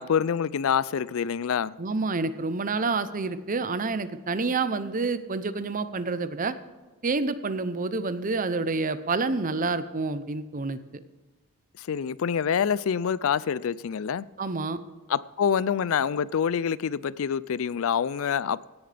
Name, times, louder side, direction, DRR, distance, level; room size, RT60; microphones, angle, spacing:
voice 1, 0.0-1.7 11.8-14.3 15.1-18.6, left 7 dB, 65° left, 0.4 m, -26 dB
voice 2, 1.8-6.5 7.0-10.8 14.4-14.8, right 3 dB, 40° right, 0.7 m, -28 dB
16.5 x 10.5 x 3.4 m
head